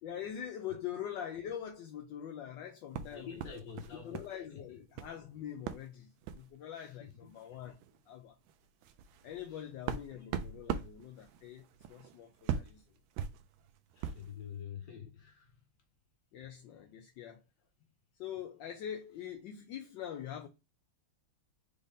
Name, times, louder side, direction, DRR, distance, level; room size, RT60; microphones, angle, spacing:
voice 1, 0.0-3.3 3.9-7.8 8.1-8.4 9.2-12.8 16.3-17.4 18.2-20.5, left 9 dB, 70° left, 1.2 m, -43 dB
sound 1, 2.9-4.4 4.6-5.2 5.7-5.9 6.2-6.5 7.4-7.5 7.8-8.0 8.5-14.3, right 8 dB, 75° right, 1.2 m, -40 dB
voice 2, 3.1-4.6 6.7-7.3 9.5-9.6 13.9-15.5, left 8 dB, 45° left, 1.5 m, -47 dB
5.2 x 2.6 x 3.5 m
omnidirectional pair, 2.4 m